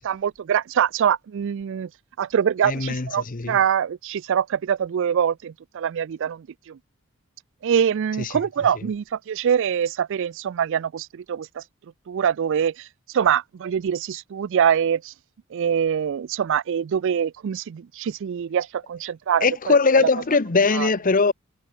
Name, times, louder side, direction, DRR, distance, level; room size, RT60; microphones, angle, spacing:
voice 1, 0.0-1.9 2.2-6.8 7.6-11.6 12.1-12.9 13.1-15.1 15.5-20.1 20.7-20.9, right 8 dB, 55° right, 0.3 m, -24 dB
voice 2, 2.6-3.6 8.2-8.4 19.4-21.3, left 4 dB, 40° left, 0.8 m, -21 dB
head